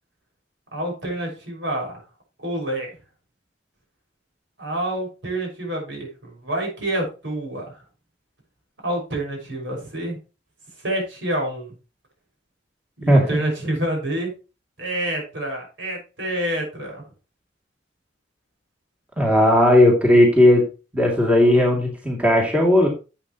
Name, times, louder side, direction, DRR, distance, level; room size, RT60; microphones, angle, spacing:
voice 1, 0.7-2.0 2.4-3.0 4.6-7.6 8.8-10.2 10.8-11.7 13.0-14.3 14.8-17.0, right 1 dB, 75° right, 0 dB, 6.0 m, -27 dB
voice 2, 13.1-13.4 19.2-20.6 20.9-22.9, left 1 dB, 10° right, -2 dB, 2.7 m, -16 dB
11.5 x 8.2 x 3.1 m, 0.31 s
head